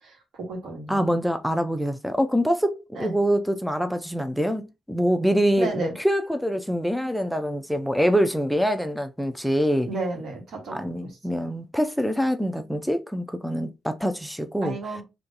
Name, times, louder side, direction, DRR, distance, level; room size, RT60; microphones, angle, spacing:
voice 1, 0.0-1.2 3.0-3.2 5.6-5.9 9.9-10.8 11.0-11.1 14.6-15.0, right 2 dB, 75° right, 1.8 m, -32 dB
voice 2, 0.9-9.9 10.7-14.8, equal, ahead, 0.3 m, -25 dB
3.7 x 2.9 x 2.8 m
wide cardioid pair, 150°, 0 cm